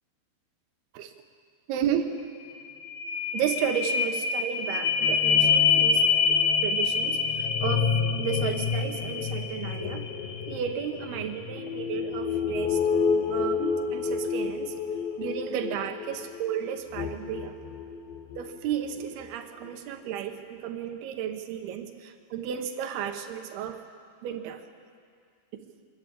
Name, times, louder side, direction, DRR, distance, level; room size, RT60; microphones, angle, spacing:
voice 1, 1.7-2.1 3.3-6.0 6.3-10.1 10.5-12.8 13.1-14.7 15.2-17.6 18.4-23.8 24.2-24.6, right 9 dB, 70° right, 6 dB, 2.7 m, -33 dB
sound 1, 2.2-2.3 2.6-18.5 19.0-19.1, left 6 dB, 65° left, 2.7 m, -27 dB
24.0 x 13.5 x 8.6 m, 2.2 s
omnidirectional pair, 5.4 m